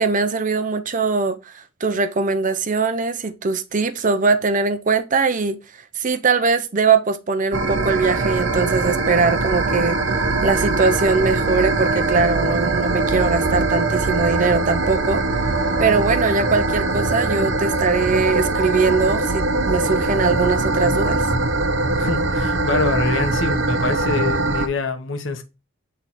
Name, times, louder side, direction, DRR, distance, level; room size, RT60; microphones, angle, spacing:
voice 1, 0.0-5.6 6.0-10.0 10.4-15.2 15.8-21.2, right 4 dB, 40° right, 0.6 m, -21 dB
sound 1, 7.5-24.7, right 2 dB, 65° right, 1.0 m, -21 dB
voice 2, 22.0-25.4, left 3 dB, 70° left, 1.1 m, -25 dB
7.9 x 3.4 x 4.1 m
head